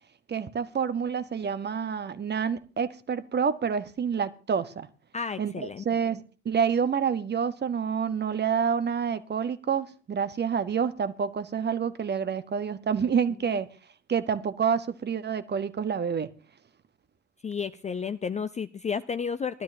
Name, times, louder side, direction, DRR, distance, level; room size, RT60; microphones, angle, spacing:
voice 1, 0.3-4.9 5.4-13.7 14.1-16.3, right 7 dB, 30° right, 1.1 m, -28 dB
voice 2, 5.1-5.8 13.5-13.6 17.4-19.6, left 6 dB, 20° left, 0.5 m, -32 dB
19.5 x 12.5 x 2.7 m
hypercardioid pair, 65°, 36 cm